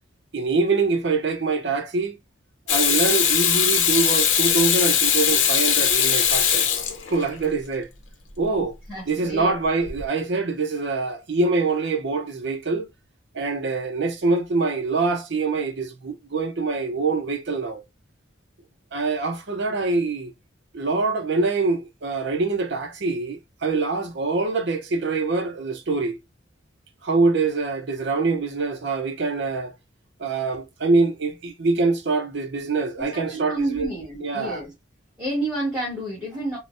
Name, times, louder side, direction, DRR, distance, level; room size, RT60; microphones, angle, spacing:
voice 1, 0.3-2.2 2.7-6.6 7.1-7.9 8.4-8.7 9.1-12.9 13.3-17.8 18.9-20.3 20.7-26.2 27.0-29.8 30.2-33.9 34.2-34.6, right 3 dB, 60° right, 0.6 m, -24 dB
Water tap faucet / Sink (filling or washing), 2.7-7.4 9.9-10.0, left 8 dB, 75° left, 0.7 m, -20 dB
voice 2, 8.9-9.5 33.0-34.7 35.2-36.6, right 1 dB, 10° right, 1.3 m, -30 dB
3.7 x 2.1 x 2.5 m
head